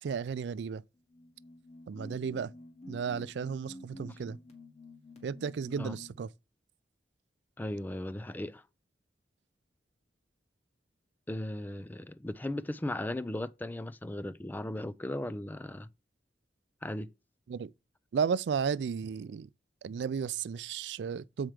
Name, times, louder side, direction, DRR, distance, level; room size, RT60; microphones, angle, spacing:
voice 1, 0.0-0.8 1.9-2.5 2.9-4.4 5.2-6.3 17.5-17.7 18.1-19.5 19.8-21.5, right 6 dB, 75° right, 0.3 m, -34 dB
sound 1, 1.0-6.2, left 1 dB, 40° left, 2.0 m, -50 dB
voice 2, 7.6-8.6 11.3-15.9 16.8-17.1, left 1 dB, 10° left, 0.3 m, -37 dB
7.5 x 4.5 x 4.9 m
head